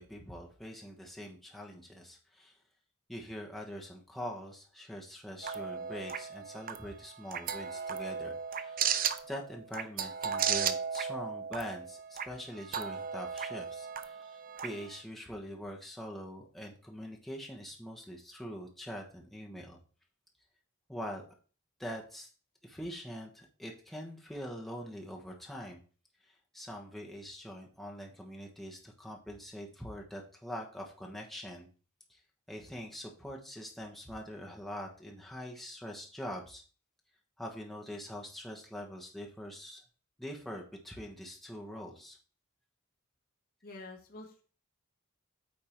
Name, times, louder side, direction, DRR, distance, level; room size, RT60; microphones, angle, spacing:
voice 1, 0.0-2.5 3.1-8.8 9.2-19.8 20.9-21.3 21.8-22.3 22.6-25.8 26.5-31.7 32.1-32.2 32.5-36.6 37.4-39.8 40.2-42.2, equal, ahead, -1 dB, 1.3 m, -43 dB
sound 1, 5.4-15.0, right 7 dB, 40° right, 0.5 m, -36 dB
voice 2, 43.6-44.4, left 2 dB, 45° left, 0 dB, 1.5 m, -47 dB
8.7 x 3.8 x 4.5 m, 0.39 s
head